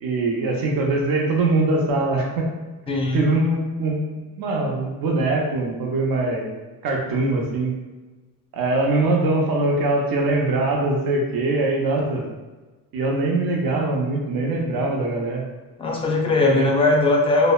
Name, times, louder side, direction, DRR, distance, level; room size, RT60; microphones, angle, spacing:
voice 1, 0.0-2.5 3.1-4.0 4.4-6.5 6.8-7.7 8.5-12.3 12.9-15.4 16.5-16.7, right 2 dB, 80° right, -1 dB, 0.6 m, -22 dB
voice 2, 2.9-3.2 15.8-17.5, left 2 dB, 15° left, 0 dB, 0.3 m, -19 dB
2.7 x 2.1 x 2.3 m, 1.2 s
cardioid pair, 130°, 35 cm